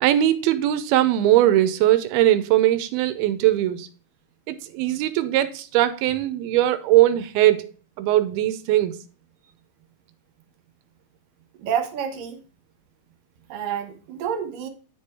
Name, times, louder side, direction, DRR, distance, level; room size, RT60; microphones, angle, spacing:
voice 1, 0.0-3.9 4.5-7.7 8.0-9.0, right 13 dB, 85° right, 2.5 m, -20 dB
voice 2, 11.6-12.4 13.5-14.7, right 8 dB, 65° right, 2.7 m, -28 dB
10.0 x 4.5 x 4.7 m
omnidirectional pair, 4.5 m